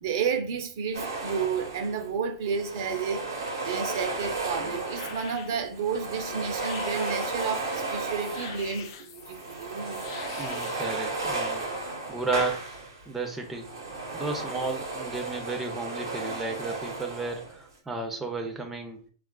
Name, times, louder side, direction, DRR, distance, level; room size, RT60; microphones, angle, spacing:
voice 1, 0.0-3.2 3.6-10.0 13.9-14.2, right 6 dB, 60° right, 0.6 m, -31 dB
sound 1, 0.9-2.1 2.4-5.4 5.7-8.8 9.2-13.0 13.4-17.6, right 3 dB, 90° right, 0.9 m, -34 dB
sound 2, 4.0-10.8, left 7 dB, 55° left, 0.4 m, -46 dB
voice 2, 10.4-11.7 12.1-12.6 13.1-13.7 14.1-19.0, right 3 dB, 10° right, 0.5 m, -33 dB
3.1 x 2.4 x 2.2 m
hypercardioid pair, 125°, 2 cm